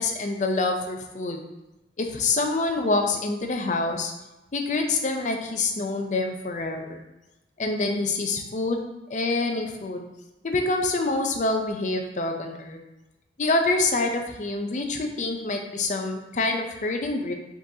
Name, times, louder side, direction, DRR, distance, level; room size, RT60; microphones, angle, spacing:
voice 1, 0.0-1.4 2.0-4.1 4.5-7.0 7.6-8.8 9.1-10.0 10.4-12.8 13.4-17.3, left 3 dB, 45° left, 4 dB, 0.5 m, -26 dB
4.9 x 3.9 x 2.7 m, 0.97 s
head